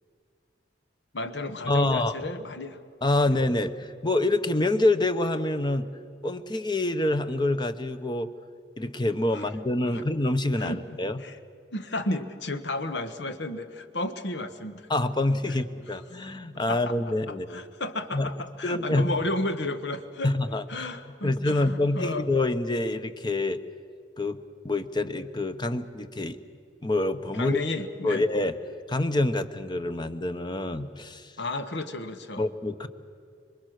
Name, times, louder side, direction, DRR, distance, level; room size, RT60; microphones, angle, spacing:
voice 1, 1.1-2.8 9.3-9.4 9.8-10.0 10.6-11.4 11.7-14.9 15.5-15.6 16.7-17.0 17.3-20.3 20.7-22.3 27.3-28.3 31.4-32.5, left 2 dB, 75° left, 9 dB, 1.4 m, -33 dB
voice 2, 1.6-2.1 3.0-5.9 6.2-8.3 8.8-11.2 14.9-17.6 18.1-18.3 18.6-19.1 20.2-20.9 21.2-23.6 24.2-24.4 24.6-26.4 26.8-27.6 28.0-28.5 28.9-31.3 32.4-32.9, left 2 dB, 25° left, 10 dB, 1.0 m, -26 dB
26.0 x 24.0 x 6.6 m, 2.3 s
head